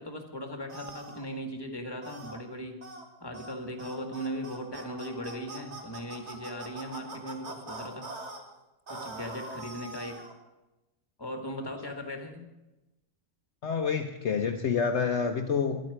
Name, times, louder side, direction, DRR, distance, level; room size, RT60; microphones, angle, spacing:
voice 1, 0.0-2.8 3.2-8.1 8.9-10.3 11.2-12.5, equal, 15° left, 5 dB, 1.9 m, -38 dB
sound 1, 0.7-1.2 2.0-2.4 2.8-3.0 3.3-3.5 3.8-8.4 8.9-10.3, right 2 dB, 55° right, 2.3 m, -42 dB
voice 2, 13.6-15.8, left 6 dB, 60° left, 5 dB, 1.1 m, -28 dB
11.5 x 8.9 x 9.9 m, 1.0 s
omnidirectional pair, 1.4 m